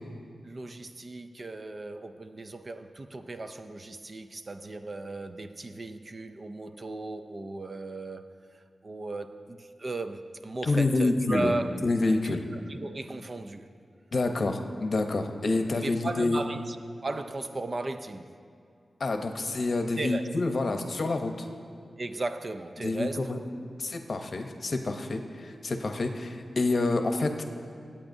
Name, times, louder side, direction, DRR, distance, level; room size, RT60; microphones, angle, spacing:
voice 1, 0.4-11.8 12.2-13.7 15.8-16.8 17.0-18.3 20.0-20.3 22.0-23.3, right 2 dB, 35° right, 9 dB, 0.4 m, -36 dB
voice 2, 10.6-11.5 11.8-12.4 14.1-16.4 19.0-21.5 22.8-23.4 23.8-27.4, left 2 dB, 50° left, 5 dB, 0.8 m, -28 dB
25.0 x 8.7 x 2.7 m, 2.3 s
wide cardioid pair, 130°, 0 cm